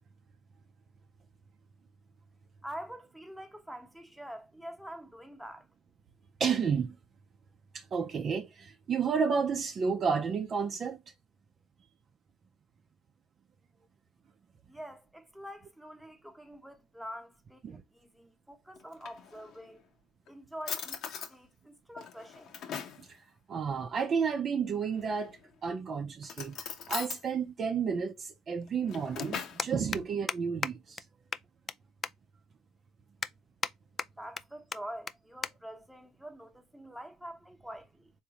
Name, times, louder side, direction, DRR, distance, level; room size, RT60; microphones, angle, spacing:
voice 1, 2.6-5.7 14.7-19.9 20.3-21.0 21.3-22.5 34.2-38.1, equal, ahead, 1.0 m, -46 dB
voice 2, 6.4-6.9 7.7-11.0 17.6-17.8 23.0-23.1 23.5-26.6 26.9-31.0, right 6 dB, 45° right, 0.6 m, -31 dB
Drawer open or close, 18.8-19.7 20.3-20.4 20.7-21.3 22.0-23.1 24.9-25.5 26.2-27.2 28.6-29.7, left 7 dB, 55° left, 0.9 m, -40 dB
sound 1, 28.4-28.5 28.7-28.9 29.2-29.3 29.6-30.0 30.3-30.4 30.6-30.7 31.0-31.1 31.3-31.8 32.0-32.1 32.6-32.7 33.2-33.7 34.0-34.4 34.7-34.8 35.1-35.2 35.4-35.5 35.8-36.1 36.9-37.1, left 5 dB, 35° left, 0.3 m, -34 dB
3.5 x 2.7 x 2.9 m
supercardioid pair, 75°, 0 cm